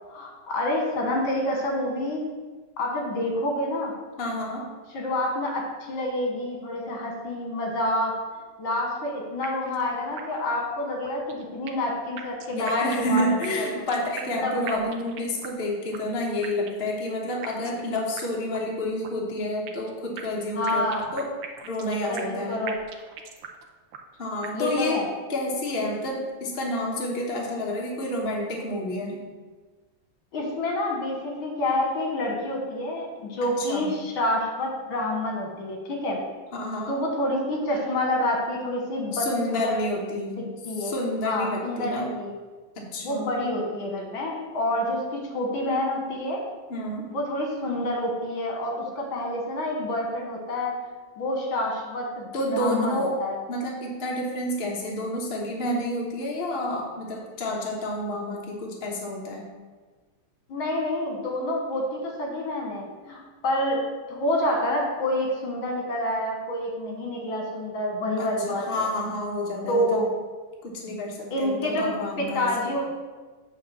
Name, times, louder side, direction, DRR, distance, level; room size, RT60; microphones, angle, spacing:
voice 1, 0.1-2.3 2.8-3.9 4.9-8.1 8.6-13.7 14.4-14.8 20.6-21.0 22.1-22.7 24.5-25.1 30.3-36.2 36.9-39.8 40.6-40.9 41.2-42.3 43.0-46.4 47.1-50.8 51.2-53.4 60.5-63.8 64.1-68.9 69.7-70.1 71.3-71.9 72.2-72.9, left 1 dB, 70° left, 0 dB, 2.1 m, -28 dB
voice 2, 4.2-4.6 12.5-21.3 21.6-22.6 24.2-25.0 25.3-29.2 33.6-33.9 36.5-37.0 39.1-40.4 40.8-42.1 42.8-43.3 46.7-47.1 52.3-53.2 53.5-59.5 68.2-70.0 70.6-72.7, left 1 dB, 30° left, -2 dB, 1.3 m, -29 dB
sound 1, 9.4-9.8 10.2-10.3 10.5-10.6 11.0-11.9 12.2-14.4 14.7-15.6 15.9-16.0 16.4-16.9 17.4-17.8 18.2-18.3 18.5-18.6 19.0-19.9 20.2-22.4 22.7-23.6 23.9-24.0 24.4-24.9, right 8 dB, 85° right, 1.6 m, -39 dB
8.3 x 3.7 x 6.9 m, 1.3 s
omnidirectional pair, 2.3 m